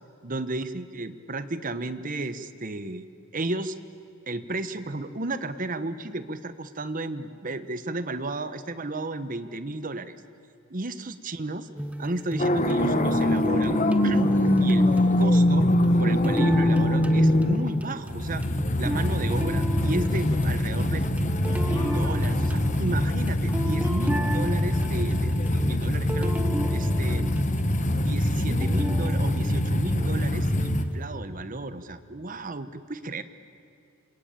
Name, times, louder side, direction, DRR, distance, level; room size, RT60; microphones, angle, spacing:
voice 1, 0.2-3.1 3.3-3.8 4.3-10.2 10.7-11.7 12.0-14.4 14.6-14.9 15.2-15.7 16.0-18.4 18.8-21.1 21.4-26.4 26.7-27.3 27.9-33.2, right 2 dB, 40° right, 11 dB, 1.0 m, -33 dB
sound 1, 11.8-31.1, equal, 5° right, 0.9 m, -35 dB
sound 2, 12.4-30.8, left 1 dB, 35° left, 1.2 m, -23 dB
sound 3, 19.6-20.5 20.9-24.5, equal, 20° left, 3.4 m, -43 dB
27.5 x 21.5 x 8.8 m, 2.5 s
head